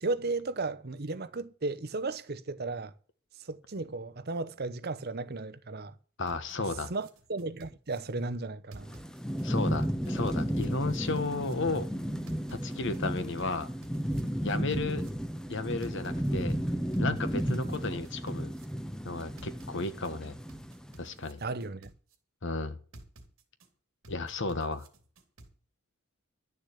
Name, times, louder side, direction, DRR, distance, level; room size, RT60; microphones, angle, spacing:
voice 1, 0.0-2.9 3.4-5.9 6.6-8.9 17.5-17.7 21.4-21.9, right 3 dB, 50° right, 0.9 m, -35 dB
voice 2, 6.2-6.9 9.4-11.9 12.6-13.7 14.4-15.1 15.5-16.6 17.0-18.5 19.0-20.4 21.0-21.4 22.4-22.8 24.1-24.9, left 3 dB, 60° left, 1.3 m, -33 dB
sound 1, 6.3-8.0 8.7-9.5 9.8-11.5 12.3-13.0 13.4-15.1 15.8-16.6 16.9-18.7 19.4-20.1 20.5-22.2 22.9-23.7 24.0-25.5, right 1 dB, 70° right, 2.6 m, -53 dB
Thunderstorm / Rain, 8.8-21.1, equal, 5° left, 0.7 m, -33 dB
11.5 x 7.0 x 8.4 m
head